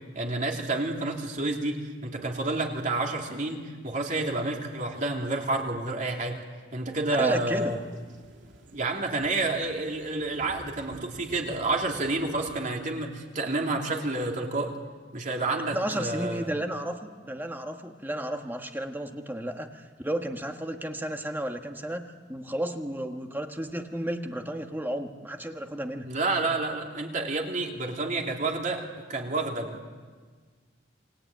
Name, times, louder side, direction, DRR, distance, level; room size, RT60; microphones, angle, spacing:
voice 1, 0.1-6.4 6.7-7.8 8.7-14.7 15.1-16.5 26.0-29.9, right 2 dB, 45° right, 1 dB, 3.2 m, -29 dB
voice 2, 7.2-7.7 15.7-26.1, right 1 dB, 10° right, 4 dB, 1.5 m, -33 dB
sound 1, 7.5-12.6, equal, 75° right, 3.0 m, -50 dB
28.0 x 20.5 x 9.2 m, 1.5 s
head